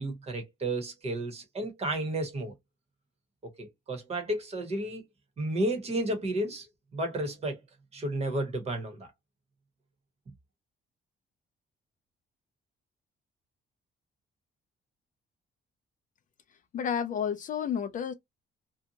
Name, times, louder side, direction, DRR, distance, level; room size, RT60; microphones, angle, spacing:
voice 1, 0.0-2.5 3.4-5.0 5.4-7.6 7.9-9.1, right 1 dB, 30° right, 1.0 m, -32 dB
voice 2, 16.7-18.1, left 8 dB, 45° left, 0.4 m, -31 dB
2.7 x 2.1 x 2.7 m
cardioid pair, 170°, 20 cm